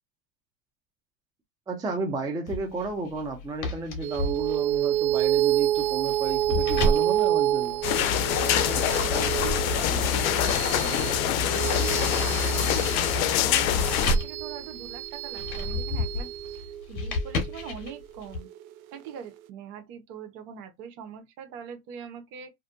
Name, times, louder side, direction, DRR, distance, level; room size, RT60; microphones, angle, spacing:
voice 1, 1.7-7.8, right 3 dB, 10° right, 0.5 m, -33 dB
Refridgerator or Car door, 2.5-8.3 8.9-18.4, left 1 dB, 45° left, 1.1 m, -33 dB
sound 1, 4.0-18.8, right 12 dB, 85° right, 0.5 m, -29 dB
sound 2, 7.8-14.2, left 10 dB, 80° left, 0.5 m, -25 dB
voice 2, 8.5-16.3 16.9-18.5 18.9-22.5, right 7 dB, 50° right, 0.8 m, -42 dB
2.6 x 2.2 x 2.5 m
hypercardioid pair, 110°, 41 cm